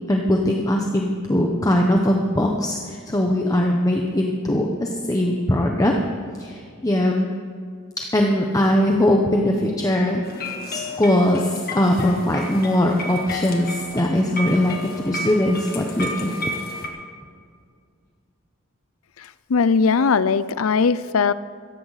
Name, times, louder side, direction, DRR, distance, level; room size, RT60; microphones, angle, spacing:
voice 1, 0.1-5.9 6.4-7.3 8.0-10.2 10.7-16.5, left 1 dB, 15° left, 1 dB, 1.0 m, -21 dB
sound 1, 10.2-16.9, left 1 dB, 45° left, 1.8 m, -32 dB
voice 2, 19.5-21.3, left 5 dB, 85° left, 16 dB, 0.5 m, -19 dB
16.5 x 14.5 x 4.1 m, 2.1 s
head